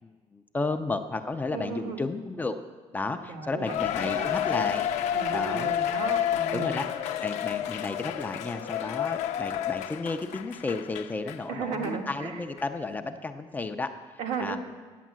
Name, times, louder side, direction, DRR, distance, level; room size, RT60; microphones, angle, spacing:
voice 1, 0.0-2.6 2.9-4.8 5.3-5.7 6.5-6.9 7.2-14.6, left 3 dB, 15° left, 6 dB, 0.5 m, -33 dB
voice 2, 1.5-2.0 3.3-4.7 5.1-6.9 11.5-12.4 14.2-14.6, right 5 dB, 75° right, 2 dB, 1.4 m, -35 dB
Cheering, 3.7-11.4 11.8-11.9 12.6-12.7, left 10 dB, 85° left, 0.6 m, -30 dB
9.2 x 8.6 x 7.4 m, 1.4 s
cardioid pair, 150°, 11 cm